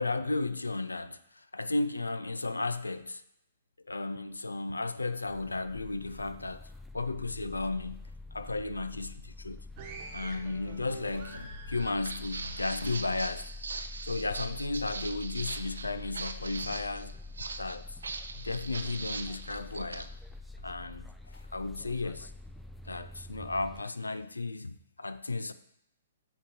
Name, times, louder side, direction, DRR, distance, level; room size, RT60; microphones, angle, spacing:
voice 1, 0.0-3.2 3.9-6.7 6.9-8.0 8.3-9.6 10.1-13.5 14.1-17.1 17.6-18.0 18.3-20.1 20.6-22.3 22.8-25.5, left 3 dB, 85° left, 0.4 m, -34 dB
sound 1, 5.3-23.8, left 2 dB, 5° left, 0.3 m, -46 dB
sound 2, 9.8-13.5 13.8-14.8 15.4-15.7, right 4 dB, 40° right, 1.0 m, -48 dB
Walk footsteps, 11.8-20.1, right 4 dB, 75° right, 0.5 m, -41 dB
8.2 x 3.0 x 5.0 m
figure-of-eight pair, 120°, 0 cm